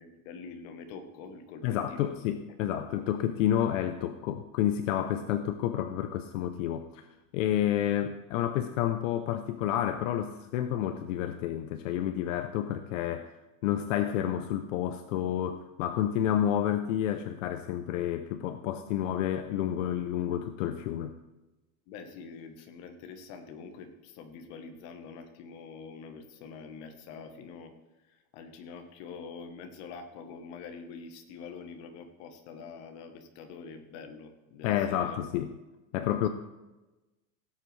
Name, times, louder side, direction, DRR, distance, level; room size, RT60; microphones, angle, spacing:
voice 1, 0.0-2.1 2.5-2.9 21.9-27.7 28.0-35.2, left 5 dB, 35° left, 6 dB, 1.1 m, -45 dB
voice 2, 1.6-7.1 7.3-13.3 13.6-21.1 34.6-35.5 35.9-36.3, left 11 dB, 60° left, 8 dB, 0.7 m, -30 dB
17.0 x 8.0 x 3.3 m, 1.1 s
supercardioid pair, 180°, 43 cm